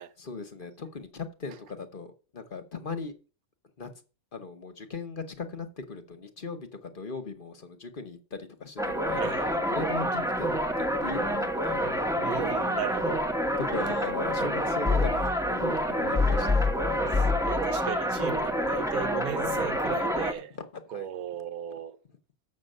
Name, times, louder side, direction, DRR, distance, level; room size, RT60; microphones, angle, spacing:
voice 1, 0.2-3.1 3.8-3.9 4.3-9.3 9.7-11.9 13.6-16.7 19.8-20.0 20.4-21.1, left 4 dB, 40° left, 1.0 m, -38 dB
sound 1, 8.8-20.3, left 1 dB, 5° right, 0.7 m, -27 dB
voice 2, 9.2-9.6 12.2-13.2 16.0-16.4 17.5-20.5 20.9-22.0, right 10 dB, 90° right, 1.3 m, -36 dB
7.4 x 6.1 x 6.5 m
omnidirectional pair, 1.5 m